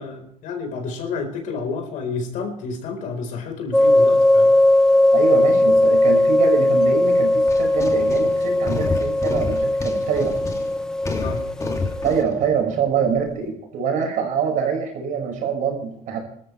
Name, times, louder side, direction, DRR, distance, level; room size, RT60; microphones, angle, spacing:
voice 1, 0.0-4.5 11.1-11.5, left 4 dB, 70° left, 4 dB, 4.5 m, -30 dB
sound 1, 3.7-12.2, left 1 dB, 5° left, 0.8 m, -18 dB
voice 2, 5.1-10.4 12.0-16.2, right 6 dB, 70° right, 2 dB, 5.8 m, -24 dB
sound 2, 7.1-13.5, left 3 dB, 20° left, 2.7 m, -30 dB
24.0 x 13.5 x 3.3 m, 0.65 s
cardioid pair, 110°, 14 cm